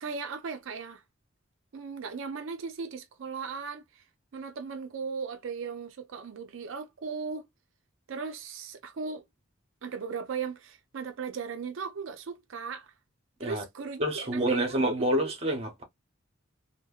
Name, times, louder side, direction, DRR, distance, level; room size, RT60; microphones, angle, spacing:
voice 1, 0.0-1.0 1.7-4.0 4.3-7.5 8.1-9.2 9.8-12.9 13.4-15.6, right 5 dB, 75° right, 0.4 m, -37 dB
voice 2, 14.0-15.8, right 1 dB, 30° right, 0.7 m, -28 dB
2.7 x 2.1 x 2.3 m
head